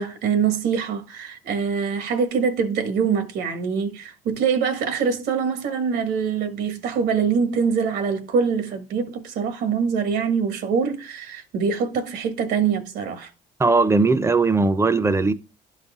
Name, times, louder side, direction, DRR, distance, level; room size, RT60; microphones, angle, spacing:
voice 1, 0.0-13.3, right 6 dB, 75° right, 1.4 m, -24 dB
voice 2, 13.6-15.3, right 3 dB, 15° right, 0.6 m, -19 dB
11.5 x 4.1 x 3.6 m
cardioid pair, 110°, 17 cm